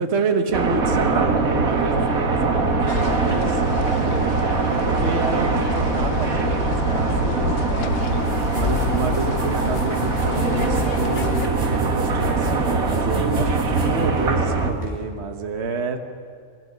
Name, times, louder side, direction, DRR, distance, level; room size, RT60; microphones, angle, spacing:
voice 1, 0.0-3.9 4.9-7.9 8.5-16.0, right 4 dB, 50° right, 6 dB, 1.5 m, -28 dB
sound 1, 0.5-14.7, right 4 dB, 85° right, 2.1 m, -22 dB
sound 2, 2.9-11.5, left 6 dB, 50° left, 0.9 m, -30 dB
sound 3, 7.8-15.0, right 1 dB, 25° right, 4.7 m, -32 dB
23.5 x 14.0 x 9.5 m, 2.3 s
omnidirectional pair, 1.4 m